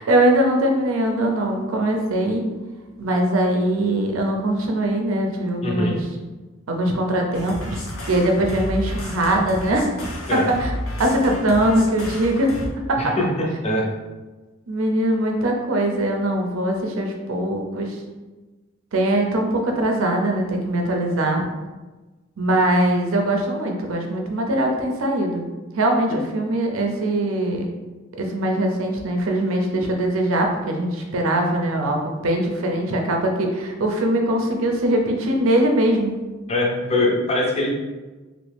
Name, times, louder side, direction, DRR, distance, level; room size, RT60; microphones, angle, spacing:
voice 1, 0.0-2.5 3.0-6.1 6.7-9.9 10.3-10.7 11.0-12.5 12.9-13.1 14.7-18.0 18.9-21.4 22.4-25.4 25.8-27.7 28.1-36.1, right 1 dB, 75° right, 2 dB, 0.5 m, -21 dB
voice 2, 5.6-6.0 10.3-10.5 13.0-13.9 36.5-37.7, left 1 dB, 30° left, -2 dB, 0.5 m, -22 dB
sound 1, 7.3-12.7, left 1 dB, 80° left, 0.7 m, -31 dB
3.0 x 2.5 x 3.4 m, 1.2 s
head